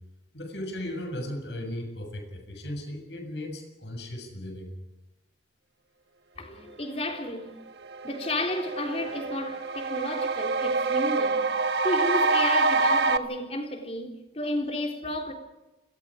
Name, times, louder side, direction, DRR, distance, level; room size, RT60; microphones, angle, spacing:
voice 1, 0.3-4.7, left 1 dB, 85° left, 7.1 m, -36 dB
voice 2, 6.4-7.6 8.0-11.5 11.8-15.3, left 1 dB, 35° left, 3.6 m, -32 dB
sound 1, 7.4-7.5 7.8-13.2, right 3 dB, 75° right, 1.4 m, -26 dB
29.5 x 22.0 x 5.1 m
head